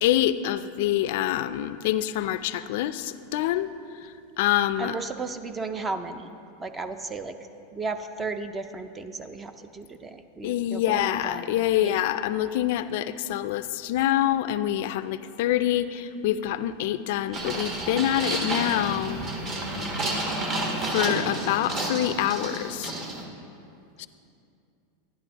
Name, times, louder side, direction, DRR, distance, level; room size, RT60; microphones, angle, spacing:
voice 1, 0.0-3.7 4.0-5.0 10.4-19.2 20.9-22.9 24.0-24.1, left 12 dB, 65° left, 13 dB, 0.3 m, -26 dB
voice 2, 4.8-7.4 7.7-11.5 11.8-12.0, right 3 dB, 15° right, 9 dB, 0.4 m, -35 dB
sound 1, 17.3-23.2, right 1 dB, 30° right, 1.2 m, -30 dB
12.0 x 11.0 x 2.9 m, 2.6 s
supercardioid pair, 135°, 0 cm